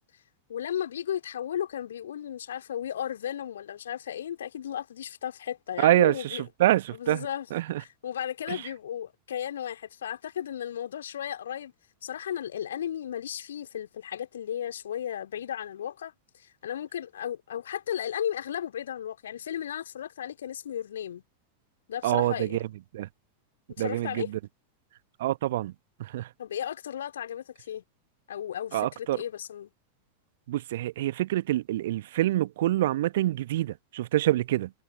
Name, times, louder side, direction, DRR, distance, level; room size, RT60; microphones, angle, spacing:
voice 1, 0.5-6.4 6.9-7.5 7.8-11.7 12.0-21.2 21.9-22.7 23.7-24.3 26.4-27.8 28.3-29.7, left 10 dB, 65° left, 2.9 m, -35 dB
voice 2, 5.8-7.3 7.5-7.8 22.0-22.6 22.9-23.1 23.8-24.3 25.2-25.7 26.0-26.3 28.7-29.2 30.5-34.7, right 14 dB, 55° right, 1.1 m, -26 dB
figure-of-eight pair, 90°, 0 cm